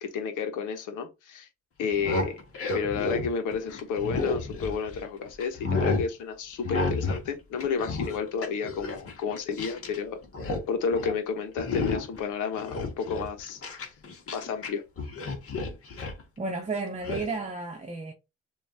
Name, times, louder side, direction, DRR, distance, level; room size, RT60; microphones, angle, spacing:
voice 1, 0.0-1.5 1.8-2.4 2.7-10.2 10.7-13.9 14.3-14.8, left 5 dB, 85° left, 1.2 m, -31 dB
sound 1, 1.8-5.1 5.4-6.1 6.6-7.3 7.5-10.0 10.2-10.6 10.9-11.2 11.6-12.2 12.6-14.7 15.0-16.2 17.0-17.2, left 3 dB, 50° left, 1.8 m, -31 dB
voice 2, 16.4-18.1, right 3 dB, 20° right, 0.8 m, -32 dB
6.9 x 2.8 x 2.7 m
cardioid pair, 90°, 30 cm